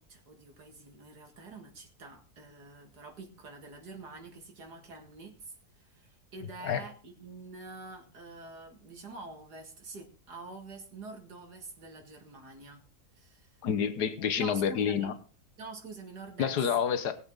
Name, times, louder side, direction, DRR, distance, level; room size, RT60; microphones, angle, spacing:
voice 1, 0.0-12.8 13.2-13.5 14.2-15.1 15.6-16.6, right 3 dB, 90° right, 4 dB, 2.7 m, -47 dB
voice 2, 13.6-15.1 16.4-17.2, left 7 dB, 85° left, 11 dB, 1.6 m, -28 dB
20.0 x 7.8 x 3.9 m, 0.36 s
omnidirectional pair, 1.7 m